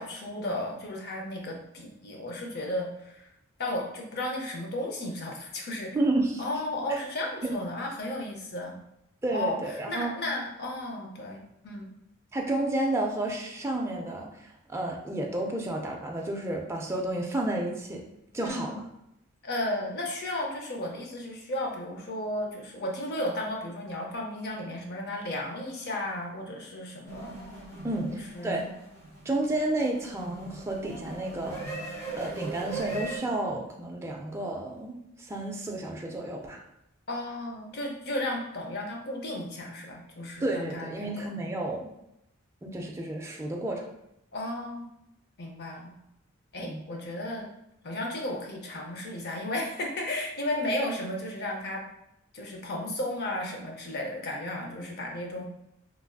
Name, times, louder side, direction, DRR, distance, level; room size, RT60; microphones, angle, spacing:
voice 1, 0.0-3.3 3.6-6.0 6.4-8.7 9.3-11.9 18.4-18.8 19.4-27.4 28.1-28.7 37.1-41.3 44.3-44.9 45.4-46.0 46.5-47.5 47.8-51.8 52.3-55.4, left 1 dB, 50° left, 0 dB, 0.6 m, -34 dB
voice 2, 5.9-6.4 6.9-7.0 7.4-7.5 9.2-10.1 12.3-14.4 14.7-18.0 18.3-18.7 27.8-28.6 29.3-31.6 32.2-36.6 40.4-41.9 42.6-43.9 46.6-46.8, right 2 dB, 10° right, 0 dB, 0.3 m, -31 dB
sound 1, 27.1-33.2, right 3 dB, 15° left, 1.1 m, -40 dB
3.2 x 2.5 x 2.2 m, 0.82 s
head